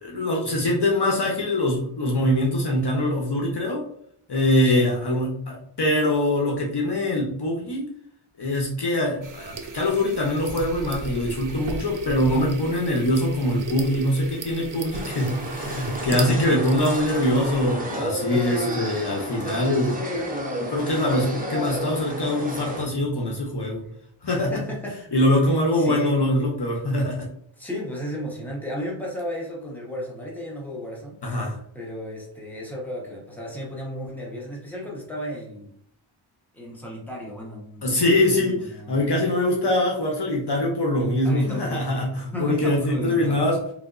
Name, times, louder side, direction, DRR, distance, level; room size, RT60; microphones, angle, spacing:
voice 1, 0.0-3.9 4.3-7.9 8.4-20.3 20.6-23.8 24.2-24.6 25.1-27.3 31.2-31.6 37.8-43.6, left 1 dB, 50° left, -1 dB, 0.8 m, -23 dB
voice 2, 4.6-4.9 16.1-16.7 18.3-18.8 24.3-25.0 25.7-26.2 27.6-31.2 31.7-35.7 36.5-39.1 41.2-43.5, equal, 5° left, -3 dB, 1.1 m, -34 dB
sound 1, 9.2-17.7, right 3 dB, 40° right, 0.5 m, -36 dB
sound 2, 14.9-22.8, right 1 dB, 15° right, 0.8 m, -31 dB
3.5 x 2.7 x 2.5 m, 0.66 s
wide cardioid pair, 55°, 50 cm